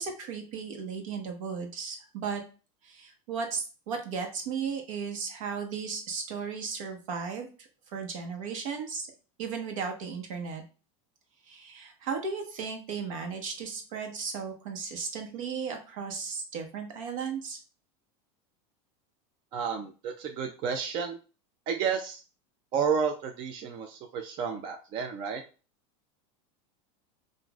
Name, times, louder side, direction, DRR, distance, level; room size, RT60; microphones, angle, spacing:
voice 1, 0.0-2.4 2.8-9.1 9.4-10.6 11.5-17.6, right 5 dB, 80° right, 4 dB, 1.1 m, -35 dB
voice 2, 19.5-21.2 21.7-22.2 22.7-25.4, right 6 dB, 30° right, 4 dB, 0.3 m, -31 dB
5.8 x 2.5 x 2.3 m, 0.35 s
supercardioid pair, 165°, 17 cm